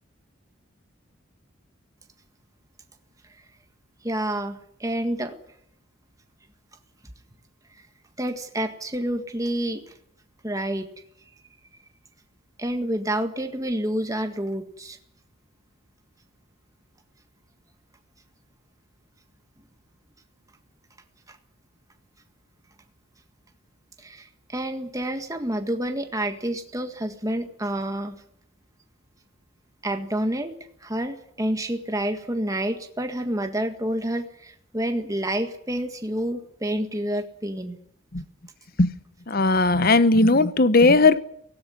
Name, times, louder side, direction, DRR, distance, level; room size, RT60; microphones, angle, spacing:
voice 1, 4.0-5.4 8.2-9.8 10.4-10.9 12.6-15.0 21.3-21.4 24.0-28.2 29.8-30.5 30.8-37.8, right 1 dB, 15° right, 1.7 m, -28 dB
voice 2, 39.3-41.2, left 3 dB, 45° left, 1.0 m, -17 dB
17.5 x 17.0 x 9.6 m
head